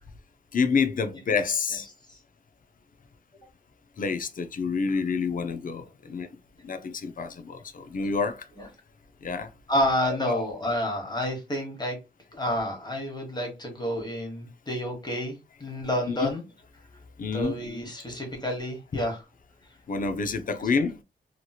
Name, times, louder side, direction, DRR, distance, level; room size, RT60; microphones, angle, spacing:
voice 1, 0.5-1.9 4.0-6.3 6.6-8.4 9.2-9.5 10.3-10.4 16.1-16.3 17.2-17.5 19.9-21.0, left 5 dB, 50° left, 0.5 m, -28 dB
voice 2, 9.7-12.0 12.3-16.4 17.3-19.2 20.6-20.7, left 1 dB, 20° left, 1.2 m, -29 dB
2.9 x 2.8 x 2.3 m
wide cardioid pair, 105°, 19 cm